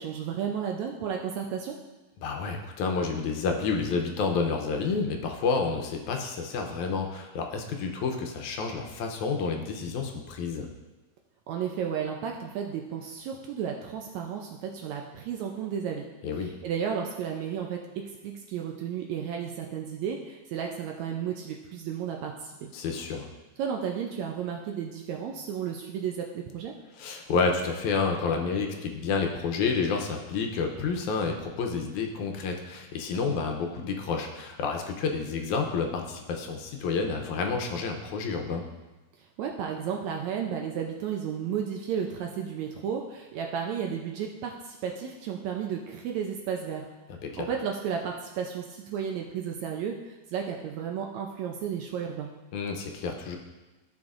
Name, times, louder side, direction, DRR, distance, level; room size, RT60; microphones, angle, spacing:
voice 1, 0.0-1.8 11.5-16.1 16.4-22.7 23.6-26.7 39.4-46.9 47.3-52.3, right 7 dB, 75° right, 1 dB, 1.8 m, -33 dB
voice 2, 2.2-10.7 16.2-16.5 22.7-23.3 27.0-38.6 47.2-47.5 52.5-53.4, left 4 dB, 75° left, 2 dB, 2.1 m, -29 dB
13.5 x 6.0 x 2.5 m, 1.1 s
omnidirectional pair, 3.6 m